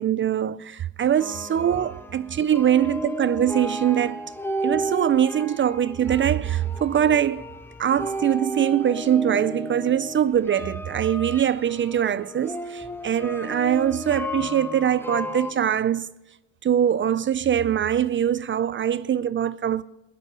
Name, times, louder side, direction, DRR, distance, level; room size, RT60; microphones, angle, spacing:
voice 1, 0.0-4.3 4.6-7.4 7.8-16.1 16.6-19.8, right 10 dB, 40° right, 0.4 m, -23 dB
sound 1, 1.2-15.5, equal, 5° left, 1.3 m, -34 dB
15.5 x 9.8 x 6.2 m
cardioid pair, 90°, 30 cm